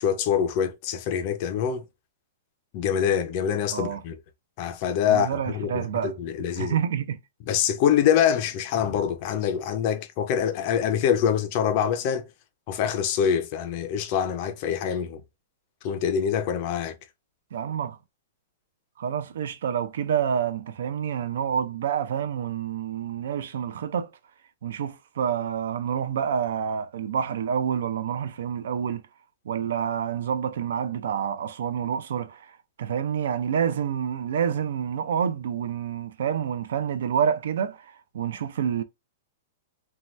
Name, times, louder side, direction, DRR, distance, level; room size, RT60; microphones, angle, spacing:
voice 1, 0.0-1.8 2.7-4.2 4.6-6.8 7.5-12.3 12.7-15.2 15.8-17.0, left 8 dB, 30° left, 0.4 m, -25 dB
voice 2, 5.1-6.1 6.6-7.2 17.5-18.0 19.0-24.1 24.6-29.0 29.5-32.5 32.8-38.8, right 8 dB, 65° right, 0.4 m, -28 dB
2.7 x 2.2 x 3.1 m
supercardioid pair, 180°, 0 cm